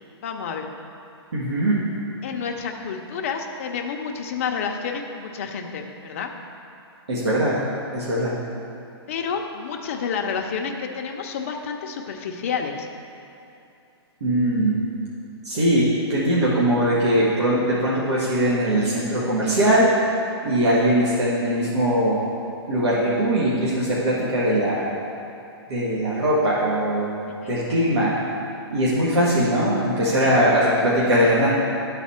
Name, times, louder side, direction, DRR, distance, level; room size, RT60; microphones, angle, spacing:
voice 1, 0.2-0.7 2.2-6.3 9.1-12.9 27.3-27.6 30.2-30.3, left 6 dB, 30° left, 3 dB, 0.5 m, -29 dB
voice 2, 1.3-1.8 7.1-7.6 7.9-8.4 14.2-14.7 15.4-19.9 20.4-22.2 22.7-24.9 25.7-27.2 27.5-28.2 28.7-31.5, right 1 dB, 85° right, -8 dB, 1.8 m, -21 dB
12.0 x 4.1 x 4.2 m, 2.7 s
hypercardioid pair, 170°, 14 cm